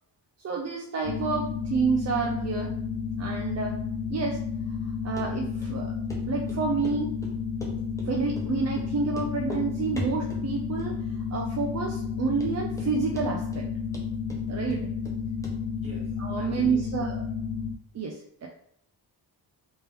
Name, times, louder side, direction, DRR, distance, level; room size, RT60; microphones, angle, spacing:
voice 1, 0.4-2.7 3.2-3.8 4.1-4.4 5.0-5.9 6.3-7.1 8.1-11.0 11.3-13.7 14.5-14.8 16.2-17.3 17.9-18.5, right 5 dB, 40° right, 0 dB, 0.4 m, -29 dB
sound 1, 1.0-17.7, left 6 dB, 80° left, 0.6 m, -32 dB
Run, 5.2-5.3 5.6-5.7 6.1-6.2 6.5-7.0 7.2-8.1 8.4-8.5 8.8-8.9 9.1-9.7 10.0-10.5 10.8-11.2 11.5-11.6 12.1-12.2 12.4-12.9 13.2-13.7 13.9-15.2 15.4-15.6 15.8-15.9, equal, 10° left, 0.6 m, -39 dB
voice 2, 15.8-16.9, equal, 15° right, -7 dB, 1.3 m, -46 dB
3.3 x 3.0 x 3.3 m, 0.68 s
wide cardioid pair, 180°, 41 cm